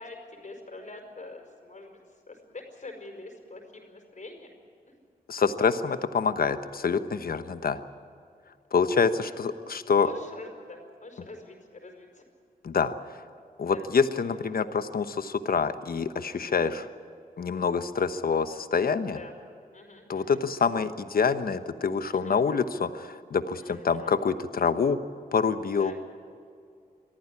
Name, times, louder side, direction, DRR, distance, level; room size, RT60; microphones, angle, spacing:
voice 1, 0.0-2.0 2.3-4.5 4.9-5.0 9.1-9.3 10.0-12.2 13.7-13.8 16.4-16.7 19.1-19.3 19.7-20.4 22.1-22.3 23.6-24.1 25.8-26.0, left 2 dB, 50° left, 3 dB, 5.1 m, -45 dB
voice 2, 5.3-7.8 8.7-10.1 12.6-12.9 13.6-16.9 17.4-19.2 20.1-25.0 25.3-25.9, left 5 dB, 65° left, 11 dB, 1.1 m, -26 dB
24.0 x 14.5 x 9.8 m, 2.4 s
cardioid pair, 60°, 16 cm